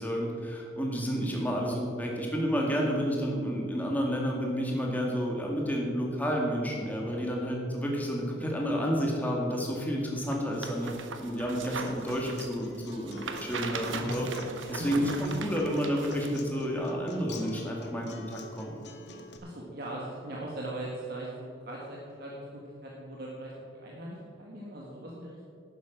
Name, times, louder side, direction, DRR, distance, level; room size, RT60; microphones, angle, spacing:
voice 1, 0.0-14.3 14.7-18.7, equal, 10° left, -1 dB, 2.2 m, -30 dB
voice 2, 0.9-1.2 8.4-8.6 13.9-14.2 14.8-15.3 19.4-25.5, right 1 dB, 55° right, -3 dB, 1.7 m, -40 dB
sound 1, 10.3-16.4 16.8-16.9, right 4 dB, 90° right, 1.1 m, -39 dB
Acoustic guitar, 11.4-19.4, left 2 dB, 60° left, 1.3 m, -47 dB
11.5 x 9.5 x 6.0 m, 2.5 s
head